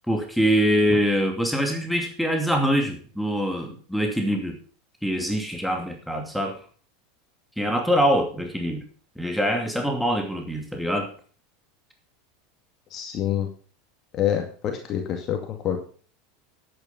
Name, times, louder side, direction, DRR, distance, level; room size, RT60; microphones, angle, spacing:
voice 1, 0.1-4.6 5.0-6.6 7.6-8.8 9.2-11.1, equal, ahead, 3 dB, 2.6 m, -24 dB
voice 2, 12.9-13.5 14.2-15.4 15.6-15.8, left 10 dB, 45° left, 4 dB, 2.3 m, -26 dB
11.0 x 9.1 x 5.8 m, 0.41 s
hypercardioid pair, 85°, 0 cm